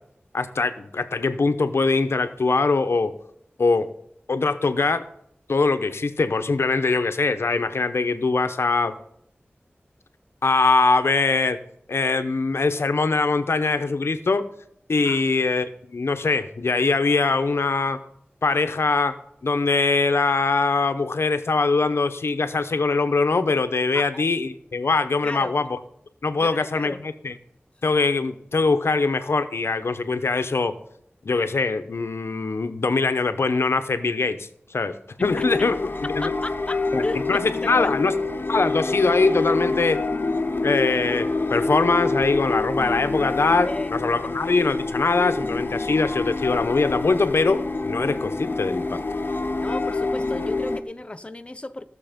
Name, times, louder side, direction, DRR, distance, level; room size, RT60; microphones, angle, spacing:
voice 1, 0.3-3.1 3.6-3.9 4.3-5.0 5.5-9.0 10.4-11.6 11.9-14.5 14.9-18.0 18.4-19.1 19.4-25.8 26.2-27.3 27.8-30.7 31.2-35.8 36.0-36.3 36.9-37.0 37.3-38.1 38.5-40.0 40.6-49.0, left 3 dB, 90° left, 10 dB, 0.8 m, -22 dB
voice 2, 25.2-25.5 26.4-27.0 35.4-35.5 36.2-37.3 37.6-37.9 43.7-43.9 49.6-51.9, left 2 dB, 25° left, 9 dB, 0.6 m, -33 dB
sound 1, 35.2-50.8, left 3 dB, 55° left, 0.9 m, -26 dB
16.0 x 6.7 x 5.2 m, 0.70 s
wide cardioid pair, 65°, 4 cm